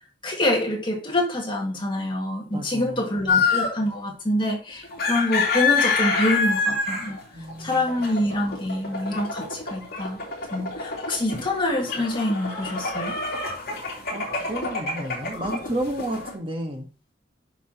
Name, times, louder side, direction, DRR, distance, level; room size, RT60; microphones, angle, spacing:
voice 1, 0.2-7.2 7.6-10.2 10.5-13.2, left 1 dB, 25° left, 0 dB, 1.9 m, -26 dB
voice 2, 2.5-3.3 7.3-7.9 14.1-16.9, right 1 dB, 30° right, 2 dB, 1.4 m, -32 dB
sound 1, 3.3-3.8 4.8-16.3, left 4 dB, 55° left, 2.5 m, -27 dB
10.0 x 5.9 x 2.9 m, 0.36 s
head